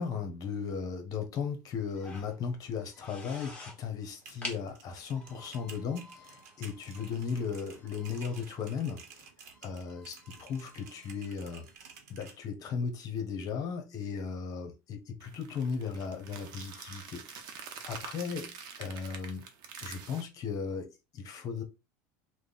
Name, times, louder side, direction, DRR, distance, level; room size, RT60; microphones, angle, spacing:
voice 1, 0.0-9.3 9.6-11.7 12.1-19.4 19.8-21.6, left 6 dB, 45° left, 1.0 m, -36 dB
sound 1, 1.9-2.3 2.8-3.8 4.2-4.6 5.1-8.5 8.9-9.0 9.5-11.7, left 2 dB, 15° left, 1.4 m, -48 dB
sound 2, 4.1-12.4, right 6 dB, 80° right, 0.9 m, -53 dB
sound 3, 15.2-20.2, right 6 dB, 55° right, 0.8 m, -46 dB
3.2 x 2.2 x 4.0 m
supercardioid pair, 105°, 9 cm